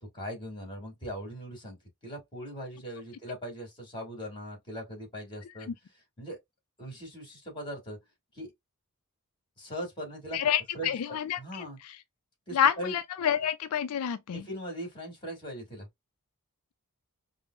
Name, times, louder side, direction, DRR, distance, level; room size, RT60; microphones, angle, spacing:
voice 1, 0.1-1.8 2.0-6.4 6.8-8.0 8.3-8.5 9.6-11.8 12.5-12.9 14.3-15.9, equal, 20° left, 2.1 m, -40 dB
voice 2, 10.3-11.7 12.5-14.4, left 9 dB, 85° left, 0.4 m, -28 dB
5.2 x 2.0 x 2.3 m
head